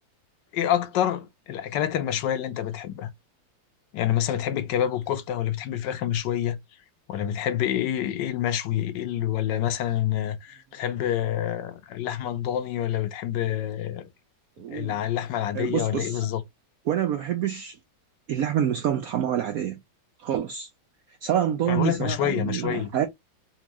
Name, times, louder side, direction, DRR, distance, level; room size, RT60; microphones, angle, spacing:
voice 1, 0.5-3.1 3.9-6.6 7.1-14.1 14.7-16.4 21.7-22.9, left 11 dB, 75° left, 1.2 m, -27 dB
voice 2, 14.6-15.0 15.5-16.3 16.9-17.8 18.3-19.8 20.2-20.7 21.2-23.1, right 10 dB, 80° right, 0.8 m, -27 dB
4.4 x 2.4 x 2.9 m
omnidirectional pair, 2.0 m